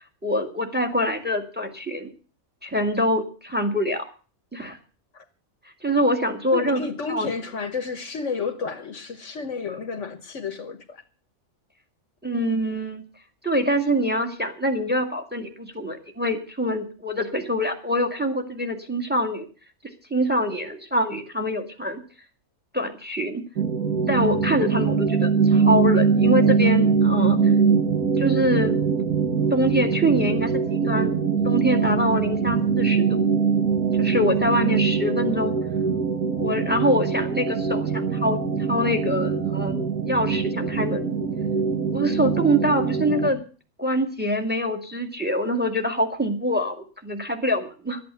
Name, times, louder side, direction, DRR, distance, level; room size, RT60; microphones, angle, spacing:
voice 1, 0.2-2.1 2.6-4.0 4.5-4.8 5.8-6.8 7.1-7.3 12.2-13.0 13.4-19.5 20.1-22.0 22.7-23.4 24.1-27.5 28.2-28.8 29.5-31.1 31.4-33.2 34.0-35.5 36.4-38.4 38.7-41.2 41.9-43.4 43.8-48.0, equal, 5° right, 6 dB, 1.9 m, -24 dB
voice 2, 6.5-11.0, left 5 dB, 60° left, 10 dB, 1.5 m, -31 dB
sound 1, 23.6-43.3, right 5 dB, 85° right, 2.0 m, -22 dB
12.5 x 8.8 x 8.1 m, 0.38 s
omnidirectional pair, 1.5 m